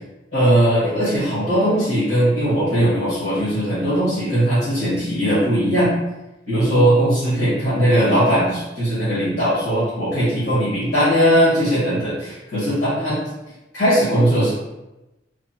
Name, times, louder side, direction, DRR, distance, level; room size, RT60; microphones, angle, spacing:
voice 1, 0.3-5.9 6.5-13.2 13.7-14.5, equal, 80° left, -12 dB, 1.3 m, -19 dB
3.2 x 2.0 x 2.6 m, 1.0 s
head